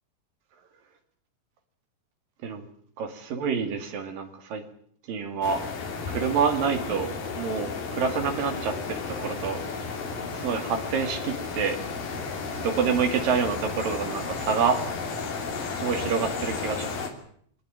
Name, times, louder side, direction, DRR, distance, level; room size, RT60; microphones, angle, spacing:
voice 1, 3.0-4.6 5.1-5.6 6.1-7.1 7.4-9.6 10.3-11.8 12.6-14.8 15.8-16.9, right 6 dB, 75° right, 6 dB, 4.0 m, -27 dB
sound 1, 5.4-17.1, left 4 dB, 85° left, 5.0 m, -33 dB
23.5 x 18.0 x 8.8 m, 0.64 s
omnidirectional pair, 4.0 m